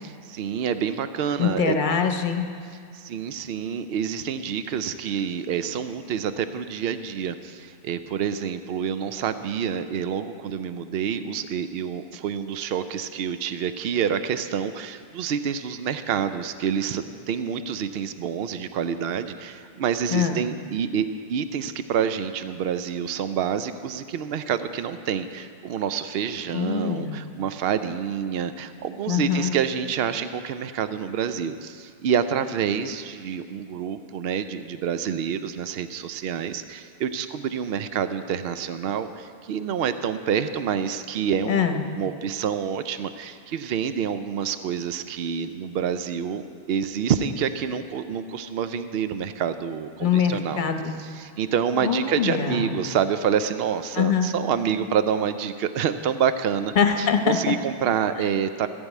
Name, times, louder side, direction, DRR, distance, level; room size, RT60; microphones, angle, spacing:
voice 1, 0.0-1.8 2.9-50.6 51.0-58.7, right 8 dB, 75° right, 11 dB, 0.8 m, -27 dB
voice 2, 1.4-2.5 20.1-20.4 26.5-27.1 29.1-29.5 41.5-41.8 50.0-50.9 51.8-52.8 53.9-54.3 56.8-57.6, left 7 dB, 55° left, 6 dB, 0.9 m, -23 dB
15.0 x 5.4 x 8.2 m, 2.1 s
omnidirectional pair, 1.0 m